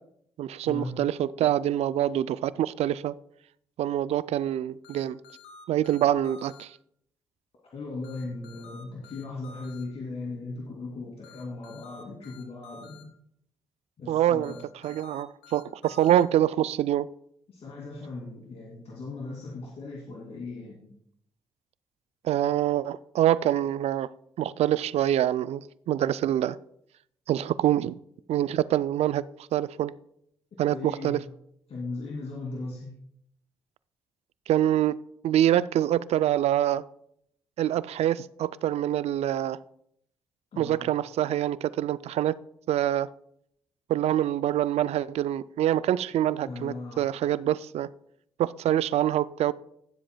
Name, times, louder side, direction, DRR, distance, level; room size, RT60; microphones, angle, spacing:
voice 1, 0.4-3.1 3.8-5.2 5.7-6.7 14.1-14.5 14.8-17.1 22.2-24.1 24.4-26.6 27.3-27.9 28.3-29.3 29.5-29.9 30.6-31.2 34.5-35.0 35.2-36.8 37.6-39.6 40.6-42.4 42.7-43.1 43.9-47.9 48.4-49.5, right 12 dB, 65° right, 0.4 m, -25 dB
sound 1, 4.8-6.6 8.0-9.8 11.2-13.0 14.4-16.2, left 5 dB, 90° left, 1.0 m, -50 dB
voice 2, 7.7-13.1 14.0-14.6 17.5-20.9 30.7-31.2 31.7-32.9 40.5-40.8 46.4-47.1, left 3 dB, 60° left, 2.5 m, -38 dB
17.0 x 7.5 x 2.2 m
hypercardioid pair, 45°, 11 cm